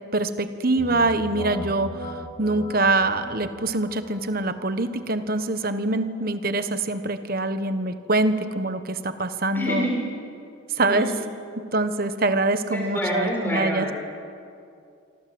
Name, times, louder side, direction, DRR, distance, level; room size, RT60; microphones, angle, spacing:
voice 1, 0.0-9.9 10.7-11.1 11.6-13.9, right 2 dB, 45° right, 10 dB, 1.3 m, -24 dB
sound 1, 0.8-10.4, equal, 25° left, 3.4 m, -40 dB
voice 2, 9.5-10.0 10.8-11.1 12.7-13.9, equal, 10° left, -3 dB, 6.7 m, -27 dB
26.5 x 25.5 x 7.9 m, 2.5 s
head